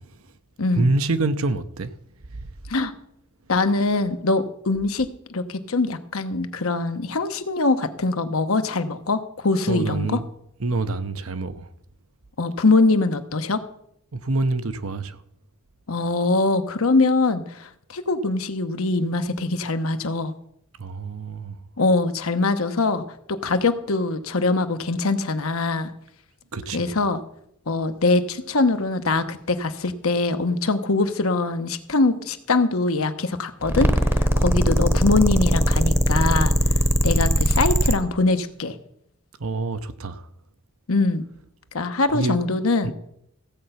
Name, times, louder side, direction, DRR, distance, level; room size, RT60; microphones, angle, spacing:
voice 1, 0.7-1.9 2.3-2.5 9.7-10.3 10.6-11.7 14.1-15.2 20.8-21.6 26.5-27.0 34.5-34.7 39.4-40.3 42.1-42.6 42.8-42.9, right 3 dB, 75° right, 0.9 m, -26 dB
voice 2, 3.5-10.1 12.4-13.6 15.9-20.3 21.8-25.9 26.7-27.2 27.7-36.5 37.0-38.7 40.9-41.2 41.7-42.9, left 3 dB, 75° left, 1.0 m, -23 dB
sound 1, 33.6-38.0, equal, 10° right, 0.9 m, -19 dB
15.5 x 7.9 x 5.8 m
head